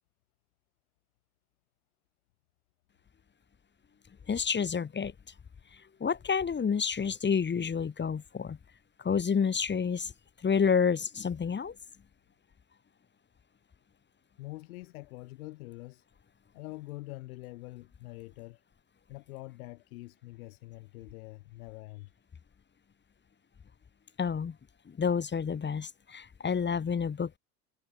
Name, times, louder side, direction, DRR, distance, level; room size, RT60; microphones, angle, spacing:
voice 1, 4.3-5.1 6.0-8.6 9.0-10.1 10.4-11.7 24.2-24.5 25.0-27.4, left 6 dB, 25° left, 1.9 m, -29 dB
voice 2, 14.4-16.0 16.5-18.6 19.1-22.1, left 20 dB, 70° left, 3.2 m, -45 dB
hypercardioid pair, 70°, 45 cm